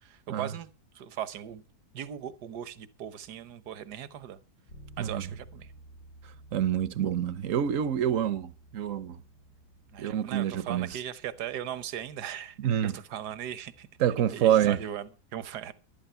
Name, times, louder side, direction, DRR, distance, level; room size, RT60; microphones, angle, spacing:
voice 1, 0.0-0.7 0.9-1.6 1.9-4.4 5.0-5.7 9.9-13.9 14.3-15.7, right 10 dB, 75° right, 1.5 m, -38 dB
Bass guitar, 4.7-14.5, right 1 dB, 70° left, 4.5 m, -55 dB
voice 2, 6.5-9.2 10.0-10.9 12.6-12.9 14.0-14.8, right 10 dB, 60° right, 1.1 m, -27 dB
12.0 x 11.5 x 5.7 m
omnidirectional pair, 1.8 m